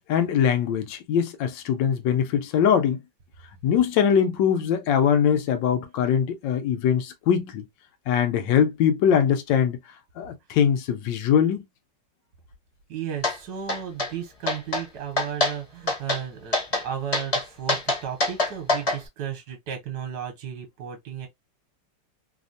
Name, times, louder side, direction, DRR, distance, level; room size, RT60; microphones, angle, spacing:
voice 1, 0.1-3.0 3.6-7.6 8.1-9.8 10.2-11.6, left 8 dB, 85° left, 1.4 m, -22 dB
voice 2, 12.9-21.3, right 9 dB, 65° right, 1.3 m, -34 dB
sound 1, 13.2-13.4 13.7-14.1 14.5-14.8 15.2-15.5 15.9-16.2 16.5-16.8 17.1-19.0, left 2 dB, 35° left, 0.6 m, -24 dB
3.3 x 2.1 x 2.5 m
omnidirectional pair, 1.9 m